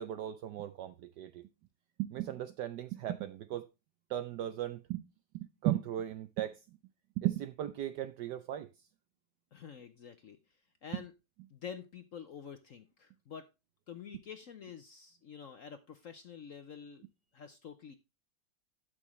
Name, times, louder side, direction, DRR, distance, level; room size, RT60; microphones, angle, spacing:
voice 1, 0.0-1.4 2.0-3.7 4.1-5.0 5.3-6.6 7.2-8.7 10.9-11.0, right 13 dB, 70° right, 1.1 m, -36 dB
voice 2, 9.5-11.1 11.5-13.5 13.9-17.0 17.3-17.9, left 7 dB, 60° left, 0.8 m, -48 dB
12.5 x 6.4 x 3.1 m
omnidirectional pair, 2.1 m